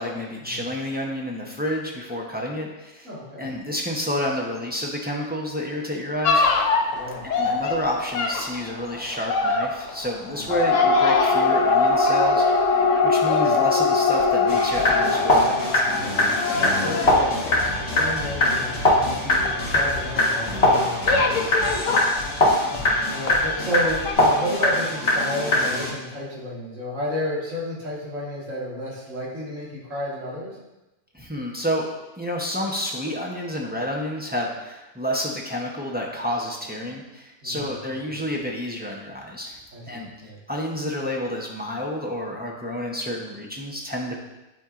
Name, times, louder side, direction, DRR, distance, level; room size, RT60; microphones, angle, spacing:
voice 1, 0.0-3.1 3.4-6.5 7.2-16.1 31.1-39.6 39.9-40.1 40.5-44.2, equal, 10° right, -2 dB, 0.6 m, -29 dB
voice 2, 3.0-3.5 6.9-7.5 10.2-10.5 13.4-13.5 16.5-30.5 37.4-37.7 39.7-40.4, equal, 70° right, -5 dB, 2.0 m, -32 dB
sound 1, 6.2-22.9 23.2-23.8 24.0-24.1, left 4 dB, 70° left, 1.1 m, -23 dB
sound 2, 14.5-25.9, left 1 dB, 50° left, 1.9 m, -22 dB
9.7 x 4.4 x 2.5 m, 1.0 s
omnidirectional pair, 1.3 m